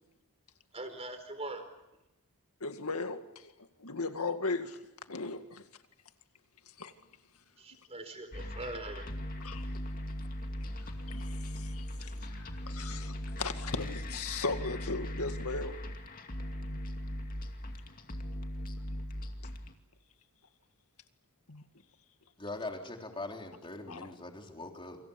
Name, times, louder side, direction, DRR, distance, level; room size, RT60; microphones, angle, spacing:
voice 1, 0.7-1.6 7.6-9.0, right 2 dB, 30° right, 4.2 m, -41 dB
voice 2, 2.6-3.5 3.8-4.8 5.1-5.6 6.8-6.9 9.4-9.6 11.1-15.8 16.6-16.8 21.5-21.6 23.9-24.1, left 3 dB, 75° left, 2.1 m, -37 dB
sound 1, 8.3-19.7, left 1 dB, 40° left, 2.4 m, -39 dB
voice 3, 22.4-25.0, left 2 dB, 25° left, 3.7 m, -41 dB
28.5 x 26.5 x 7.1 m
head